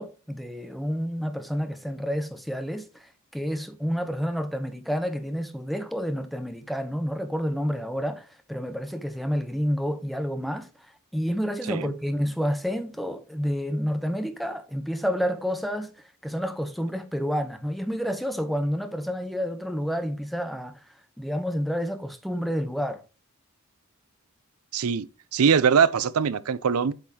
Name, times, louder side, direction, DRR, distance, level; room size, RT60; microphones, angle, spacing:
voice 1, 0.0-20.8 21.2-23.0, equal, ahead, 0.8 m, -29 dB
voice 2, 24.7-26.9, right 6 dB, 90° right, 0.5 m, -22 dB
8.3 x 6.1 x 2.8 m
head